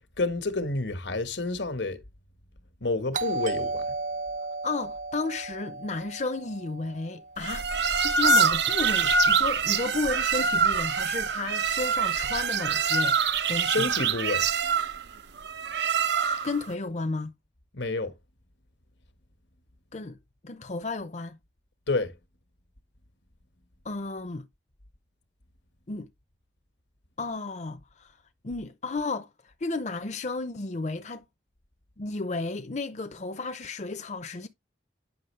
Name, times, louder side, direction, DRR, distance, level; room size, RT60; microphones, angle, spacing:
voice 1, 0.2-2.0 2.8-3.8 13.6-14.5 17.7-18.1 21.9-22.1, left 3 dB, 85° left, 1.5 m, -29 dB
Doorbell, 3.1-7.7, right 3 dB, 45° right, 0.4 m, -34 dB
voice 2, 4.6-7.7 8.0-13.2 13.5-13.9 16.4-17.3 19.9-20.2 20.4-21.4 23.8-24.5 25.9-26.1 27.2-28.1 28.4-31.2 32.0-34.5, left 3 dB, 40° left, 0.6 m, -33 dB
sound 1, 7.4-16.6, right 5 dB, 75° right, 0.8 m, -25 dB
9.4 x 6.1 x 3.2 m
head